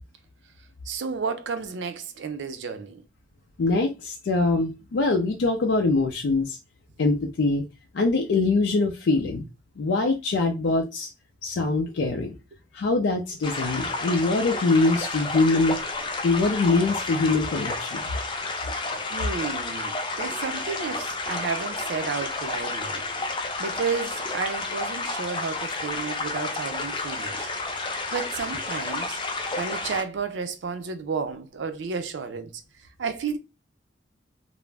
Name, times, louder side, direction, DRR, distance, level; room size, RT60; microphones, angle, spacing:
voice 1, 0.9-3.0 19.1-23.1 23.6-27.5 28.1-29.2 29.6-32.6 33.0-33.4, right 5 dB, 85° right, 0.5 m, -32 dB
voice 2, 3.6-6.6 7.0-7.6 7.9-9.4 9.8-11.1 11.4-12.3 12.7-15.8 16.2-18.0, left 3 dB, 85° left, 0.4 m, -23 dB
sound 1, 13.4-30.0, left 3 dB, 25° left, 0.4 m, -31 dB
2.4 x 2.0 x 3.2 m
head